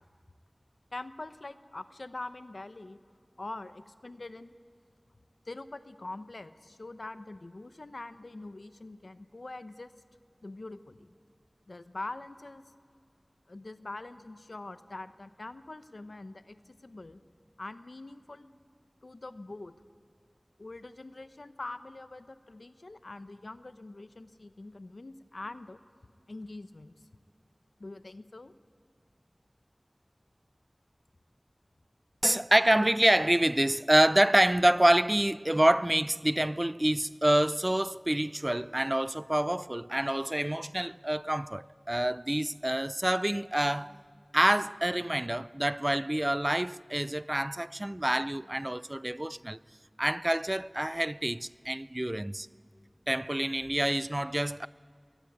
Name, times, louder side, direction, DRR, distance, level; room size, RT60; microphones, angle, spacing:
voice 1, 0.9-3.0 3.4-4.5 5.5-9.9 10.4-11.1 11.7-12.6 13.5-17.2 17.6-18.5 19.0-19.7 20.6-25.8 26.3-26.9 27.8-28.5, left 2 dB, 85° left, 0.9 m, -43 dB
voice 2, 32.2-44.0 44.3-49.6 50.0-52.5 53.1-54.7, right 1 dB, 25° right, 0.4 m, -27 dB
22.5 x 17.5 x 9.4 m
wide cardioid pair, 45°, 0 cm